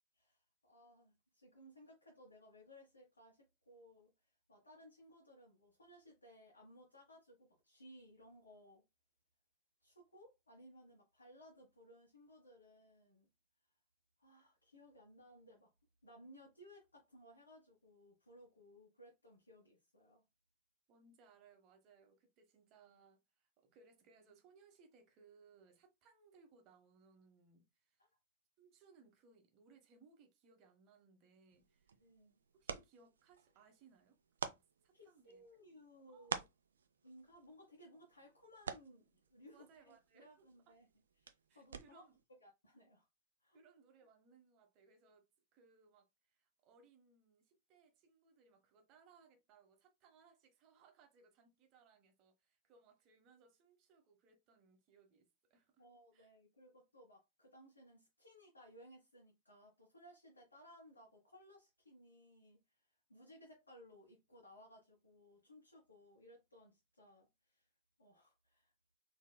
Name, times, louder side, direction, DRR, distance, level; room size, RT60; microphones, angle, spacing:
voice 1, 0.1-4.1 4.5-8.8 9.8-13.3 14.2-15.7 16.0-20.2 28.0-28.1 32.0-32.4 34.9-36.4 37.0-40.9 41.2-42.0 42.4-43.1 43.4-43.6 55.8-62.8 63.1-67.7 68.0-68.7, equal, 75° left, 1.0 m, -61 dB
voice 2, 20.9-28.0 28.6-31.9 32.5-34.2 34.5-35.8 36.1-36.3 39.5-40.8 41.5-42.2 43.5-45.3 45.5-55.8 56.1-56.3, right 5 dB, 40° right, 0.9 m, -67 dB
sound 1, 31.5-42.2, right 6 dB, 70° right, 0.4 m, -50 dB
4.0 x 2.8 x 2.2 m
figure-of-eight pair, 90°, 0 cm